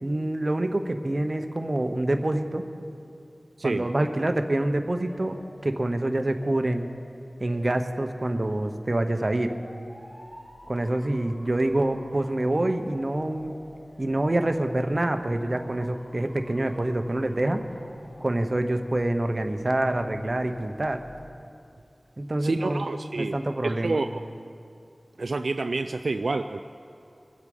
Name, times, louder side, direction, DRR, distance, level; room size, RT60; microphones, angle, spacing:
voice 1, 0.0-2.6 3.6-5.4 5.6-6.9 7.4-9.5 10.7-13.5 14.0-17.6 18.2-21.0 22.2-22.8 23.2-24.0, right 1 dB, 40° right, 6 dB, 1.0 m, -26 dB
Motor vehicle (road) / Siren, 5.0-21.2, equal, 75° left, 3.7 m, -51 dB
voice 2, 22.4-23.4 23.6-24.2 25.2-26.6, right 3 dB, 75° right, 7 dB, 0.4 m, -28 dB
23.5 x 8.1 x 5.5 m, 2.6 s
wide cardioid pair, 70°, 0 cm